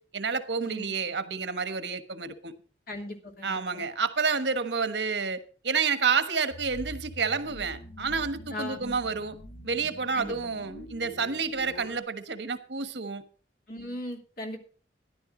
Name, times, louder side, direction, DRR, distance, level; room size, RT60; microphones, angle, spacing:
voice 1, 0.0-2.5 3.4-9.4 9.6-13.2, right 5 dB, 75° right, 1.3 m, -29 dB
voice 2, 2.9-3.8 8.4-9.0 10.1-10.3 13.7-14.6, left 1 dB, 55° left, 2.9 m, -38 dB
sound 1, 6.5-12.0, equal, 85° left, 2.2 m, -45 dB
14.0 x 11.0 x 3.9 m
head